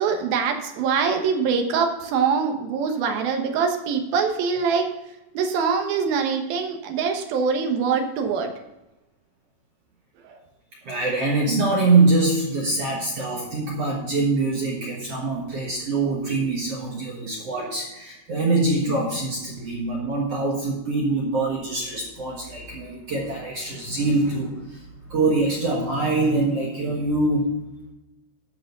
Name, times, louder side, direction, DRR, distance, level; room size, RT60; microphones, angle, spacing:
voice 1, 0.0-4.9 5.3-8.5 10.3-10.4, right 6 dB, 75° right, 5 dB, 2.9 m, -23 dB
voice 2, 10.8-24.8 25.1-27.5, right 3 dB, 55° right, -3 dB, 1.9 m, -24 dB
12.5 x 5.0 x 6.6 m, 1.0 s
omnidirectional pair, 4.5 m